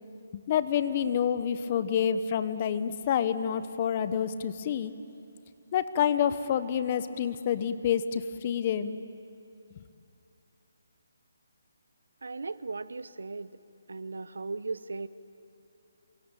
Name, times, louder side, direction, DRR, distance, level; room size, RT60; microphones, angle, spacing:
voice 1, 0.3-4.9 5.7-9.0 9.8-9.9, left 8 dB, 30° left, 13 dB, 1.0 m, -28 dB
voice 2, 12.2-13.5 13.9-15.1, right 3 dB, 85° right, 16 dB, 1.0 m, -37 dB
27.5 x 23.0 x 9.2 m, 2.7 s
hypercardioid pair, 165°, 0 cm